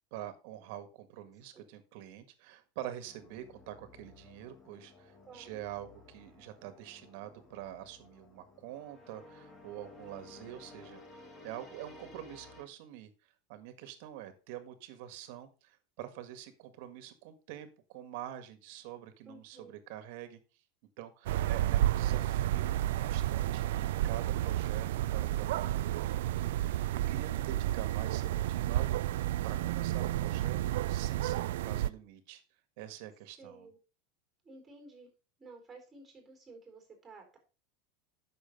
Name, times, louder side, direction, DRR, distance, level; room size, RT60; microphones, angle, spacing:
voice 1, 0.1-11.0 11.4-13.1 13.5-20.4 21.0-32.4 32.8-33.7, right 12 dB, 60° right, 10 dB, 1.8 m, -46 dB
sound 1, 3.1-12.6, left 2 dB, 25° left, 2.1 m, -55 dB
voice 2, 5.3-5.6 19.3-19.7 33.4-33.8 34.4-35.1 35.4-37.4, right 3 dB, 15° right, 4 dB, 4.0 m, -53 dB
sound 2, 21.3-31.9, right 13 dB, 85° right, 0.4 m, -31 dB
9.0 x 6.7 x 5.3 m, 0.34 s
supercardioid pair, 150°, 0 cm